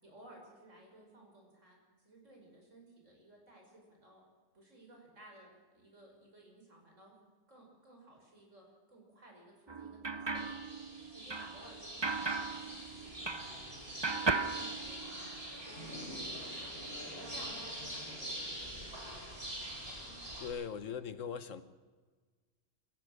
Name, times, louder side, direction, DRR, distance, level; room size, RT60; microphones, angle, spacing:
voice 1, 0.0-1.8 2.0-4.2 4.5-5.5 5.7-7.1 7.5-10.7 11.1-13.7 14.0-15.3 15.5-16.7 17.0-19.4, right 1 dB, 75° right, 0 dB, 6.3 m, -57 dB
sound 1, 9.7-13.7 14.0-15.5, right 4 dB, 25° right, 0.6 m, -37 dB
sound 2, 10.3-20.5, equal, 50° right, 5.0 m, -44 dB
voice 2, 20.4-21.6, left 7 dB, 75° left, 13 dB, 1.4 m, -40 dB
27.0 x 15.5 x 6.5 m, 1.4 s
omnidirectional pair, 1.3 m